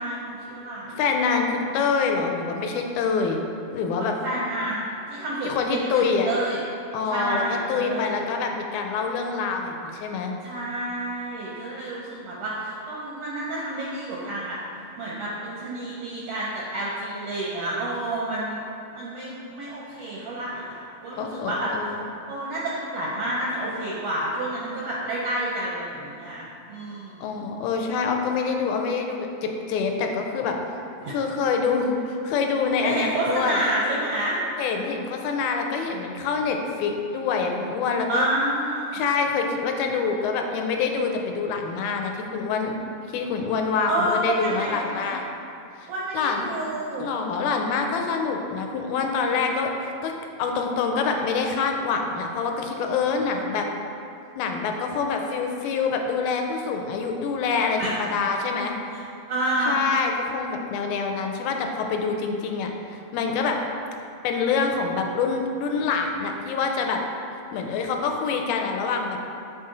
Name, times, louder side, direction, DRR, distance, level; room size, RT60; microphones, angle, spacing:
voice 1, 0.0-1.0 4.2-6.6 7.1-8.1 10.4-14.6 14.9-18.6 18.9-21.7 22.3-27.5 31.0-31.1 32.8-34.4 38.1-39.0 43.9-45.2 45.9-47.0 57.8-58.0 58.9-59.0 59.3-59.8, right 1 dB, 80° right, -5 dB, 1.4 m, -29 dB
voice 2, 1.0-3.4 3.7-4.1 5.4-6.3 6.9-10.3 21.2-21.9 27.2-30.6 31.1-33.6 34.6-38.3 38.9-42.7 43.1-45.3 45.8-46.6 47.0-49.7 50.0-50.1 50.4-53.7 54.4-58.7 59.7-63.6 64.2-67.0 67.5-69.2, left 5 dB, 80° left, 3 dB, 2.0 m, -26 dB
6.5 x 4.1 x 3.8 m, 2.7 s
omnidirectional pair, 3.5 m